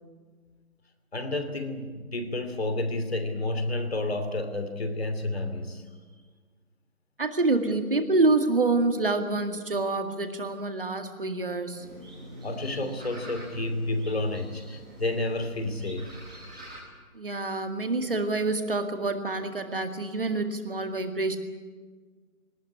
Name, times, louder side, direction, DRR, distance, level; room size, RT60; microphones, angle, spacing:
voice 1, 1.1-5.8 12.4-16.1, left 2 dB, 45° left, 8 dB, 2.8 m, -30 dB
voice 2, 7.2-11.9 17.1-21.4, right 3 dB, 40° right, 6 dB, 2.0 m, -27 dB
sound 1, 11.7-16.8, right 1 dB, 5° right, 1.4 m, -44 dB
21.0 x 19.0 x 9.7 m, 1.5 s
figure-of-eight pair, 170°, 44 cm